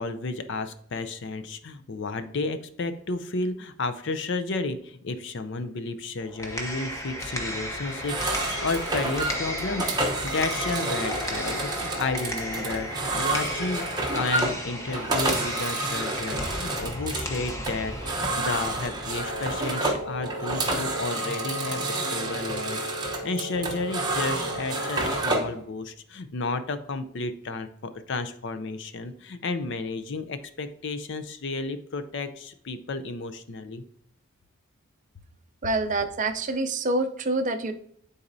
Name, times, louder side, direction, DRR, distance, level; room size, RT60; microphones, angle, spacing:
voice 1, 0.0-13.8 14.1-33.8, left 3 dB, 55° left, 10 dB, 0.5 m, -32 dB
sound 1, 6.2-20.2, equal, 15° left, 0.8 m, -34 dB
sound 2, 7.9-25.6, right 2 dB, 20° right, 0.9 m, -30 dB
Wind instrument woodwind instrument, 19.1-25.5, equal, 90° left, 1.5 m, -37 dB
voice 2, 35.6-37.7, right 2 dB, 35° right, 8 dB, 0.5 m, -26 dB
9.9 x 4.0 x 2.6 m, 0.67 s
head